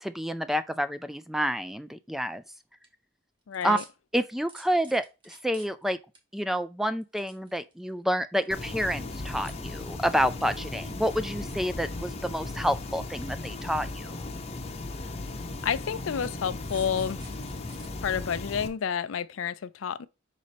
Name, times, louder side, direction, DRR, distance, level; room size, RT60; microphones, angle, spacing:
voice 1, 0.0-2.4 3.6-3.8 4.1-6.0 6.3-14.2, equal, ahead, 0.3 m, -29 dB
sound 1, 2.6-2.9 3.5-3.9 4.5-5.9 6.1-6.2 6.9-7.9 8.4-8.8 9.3-9.5 9.8-10.5 11.3-12.1 12.4-12.5 12.9-13.1 13.4-13.5 14.3-14.4 15.1-15.2 16.1-17.9 18.3-18.4, right 3 dB, 25° right, 1.4 m, -50 dB
voice 2, 3.5-3.8 15.6-17.2 18.0-20.1, left 7 dB, 75° left, 0.4 m, -30 dB
sound 2, 8.5-18.7, left 2 dB, 30° left, 0.7 m, -37 dB
5.2 x 4.2 x 5.0 m
head